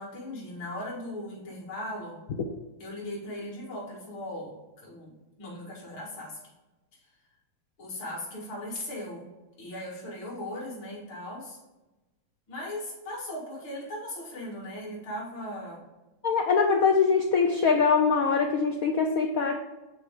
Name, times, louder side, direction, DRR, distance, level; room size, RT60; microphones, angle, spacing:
voice 1, 0.0-2.2 2.8-6.4 7.8-9.3 9.6-11.6 12.5-15.8, left 1 dB, 65° left, -4 dB, 2.7 m, -38 dB
voice 2, 16.2-19.6, left 5 dB, 90° left, 3 dB, 0.7 m, -23 dB
8.1 x 4.3 x 3.6 m, 1.1 s
omnidirectional pair, 2.3 m